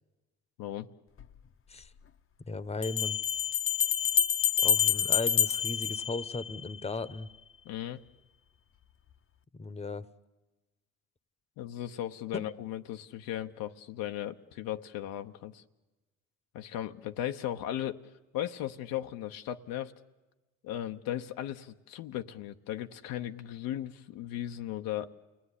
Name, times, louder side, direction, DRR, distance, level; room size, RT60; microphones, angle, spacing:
Bell, 1.2-1.3 2.8-6.7, left 8 dB, 40° left, 0.9 m, -27 dB
voice 1, 2.5-3.2 4.6-7.3 9.5-10.1 12.3-12.4, left 3 dB, 20° left, 15 dB, 1.1 m, -36 dB
voice 2, 7.6-8.0 11.6-15.6 16.5-18.0 18.3-19.9 20.6-25.1, left 12 dB, 80° left, 6 dB, 1.0 m, -36 dB
28.5 x 19.0 x 9.9 m, 1.2 s
supercardioid pair, 70°, 34 cm